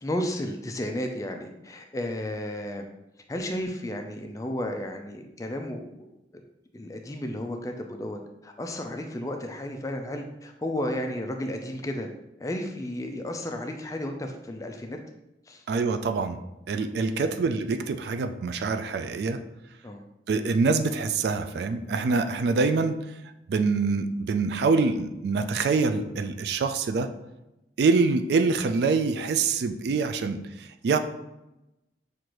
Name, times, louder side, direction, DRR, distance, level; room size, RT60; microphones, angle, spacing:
voice 1, 0.0-2.9 3.3-6.1 6.7-12.1 12.4-15.0 15.5-15.6 17.0-17.4 19.8-20.0, left 1 dB, 20° left, 4 dB, 0.4 m, -33 dB
voice 2, 15.7-16.4 16.7-19.4 20.3-23.0 23.5-27.1 27.8-31.0, right 4 dB, 65° right, 9 dB, 0.3 m, -25 dB
6.3 x 2.5 x 3.0 m, 0.94 s
head